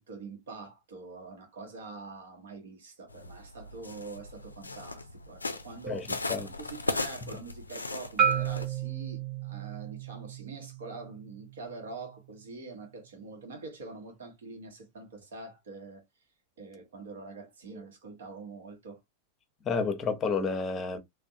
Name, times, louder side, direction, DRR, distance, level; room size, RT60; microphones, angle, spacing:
voice 1, 0.0-16.0 16.6-19.0, right 3 dB, 60° right, 1.0 m, -45 dB
sound 1, 3.1-8.7, left 3 dB, 80° left, 0.4 m, -37 dB
voice 2, 5.9-6.5 19.6-21.0, left 4 dB, 25° left, 0.7 m, -30 dB
Marimba xylophone, 8.2-12.4, right 8 dB, 30° right, 0.9 m, -32 dB
3.5 x 2.2 x 2.6 m
figure-of-eight pair, 90°, 0 cm